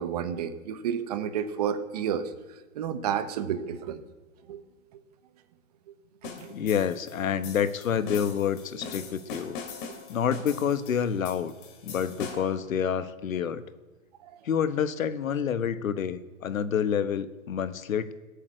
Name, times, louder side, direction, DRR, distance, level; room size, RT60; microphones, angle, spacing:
voice 1, 0.0-2.3 2.7-4.0 4.5-4.6 6.2-6.5 9.9-10.0 12.3-12.4 14.2-14.4, right 8 dB, 30° right, 11 dB, 0.9 m, -31 dB
voice 2, 6.2-9.6 10.1-11.5 11.8-13.6 14.4-18.1, left 8 dB, 80° left, 13 dB, 1.2 m, -28 dB
sound 1, 6.2-12.6, left 5 dB, 40° left, 2.6 m, -42 dB
18.5 x 8.5 x 8.0 m, 1.2 s
hypercardioid pair, 160°, 40 cm